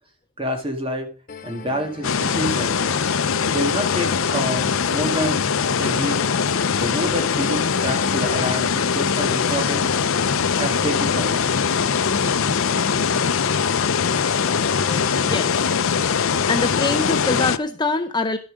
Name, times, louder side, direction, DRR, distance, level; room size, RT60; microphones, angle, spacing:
voice 1, 0.4-1.1 1.4-2.8 3.5-5.4 5.7-6.2 6.8-9.9 10.6-11.4, equal, 25° right, 3 dB, 1.9 m, -27 dB
sound 1, 1.3-17.3, left 3 dB, 40° left, 1.3 m, -37 dB
sound 2, 2.0-17.6, left 6 dB, 65° left, 0.6 m, -21 dB
voice 2, 15.2-15.7 16.5-18.4, left 3 dB, 20° left, 7 dB, 0.5 m, -24 dB
11.5 x 7.0 x 5.1 m, 0.38 s
head